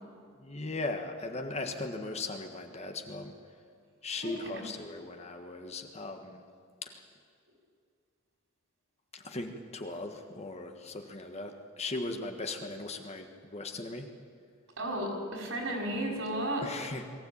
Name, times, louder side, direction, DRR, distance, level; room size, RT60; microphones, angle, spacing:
voice 1, 0.4-3.3 4.0-6.4 6.8-7.0 9.1-14.1 16.6-17.0, left 2 dB, 30° left, 5 dB, 1.4 m, -38 dB
voice 2, 4.2-4.7 14.8-16.7, right 1 dB, 65° right, 0 dB, 5.3 m, -34 dB
22.0 x 15.5 x 8.7 m, 2.2 s
head